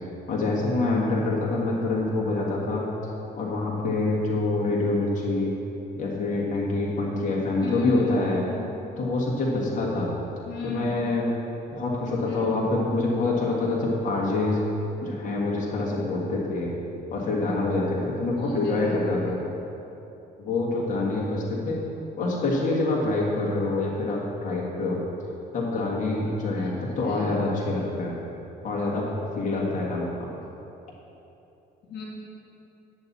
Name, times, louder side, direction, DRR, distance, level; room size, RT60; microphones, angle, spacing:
voice 1, 0.3-2.8 3.3-5.5 6.0-8.4 9.0-10.1 10.6-11.3 11.7-14.6 15.0-16.8 17.1-19.4 20.4-21.8 22.2-25.0 25.5-28.2 28.6-30.3, left 2 dB, 50° left, -4 dB, 1.7 m, -26 dB
voice 2, 7.6-8.8 10.4-11.0 12.2-12.6 18.4-19.2 26.6-27.3 31.8-32.0, left 4 dB, 75° left, -3 dB, 1.8 m, -34 dB
10.5 x 7.3 x 4.2 m, 2.9 s
cardioid pair, 110°, 17 cm